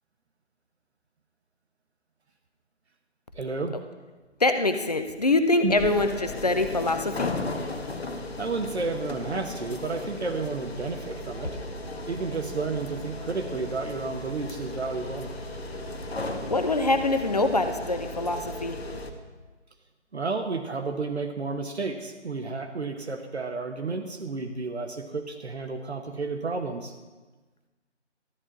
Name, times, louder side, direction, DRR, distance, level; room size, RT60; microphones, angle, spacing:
voice 1, 3.3-3.7 5.6-5.8 8.4-11.6 12.1-15.3 20.1-26.9, right 4 dB, 65° right, 4 dB, 1.0 m, -31 dB
voice 2, 4.4-7.3 16.5-18.8, left 2 dB, 35° left, 8 dB, 0.6 m, -24 dB
sound 1, 5.8-19.1, left 2 dB, 60° left, 1.3 m, -36 dB
13.0 x 4.4 x 7.8 m, 1.3 s
figure-of-eight pair, 155°, 36 cm